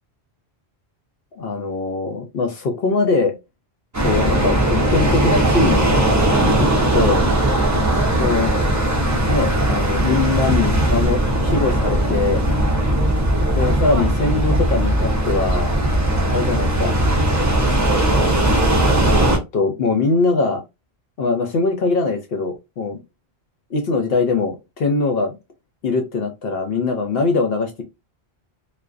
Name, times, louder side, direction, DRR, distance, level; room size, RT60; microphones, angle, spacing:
voice 1, 1.3-3.4 4.0-5.9 6.5-6.7 6.9-7.3 8.2-8.5 9.3-12.4 13.5-15.7 16.3-17.0 19.1-20.6 21.2-23.0 23.7-25.4 25.8-27.8, left 3 dB, 65° left, 0.8 m, -22 dB
sound 1, 3.9-19.4, right 1 dB, 30° right, 0.3 m, -18 dB
2.4 x 2.1 x 2.3 m
omnidirectional pair, 1.1 m